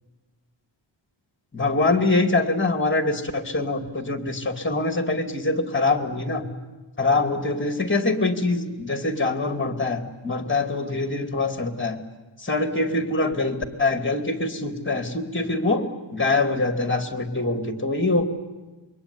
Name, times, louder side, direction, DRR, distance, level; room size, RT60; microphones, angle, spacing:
voice 1, 1.5-6.4 7.0-12.0 12.4-15.8 16.1-18.2, left 3 dB, 25° left, 7 dB, 2.6 m, -24 dB
26.5 x 23.0 x 9.9 m, 1.2 s
wide cardioid pair, 105°, 48 cm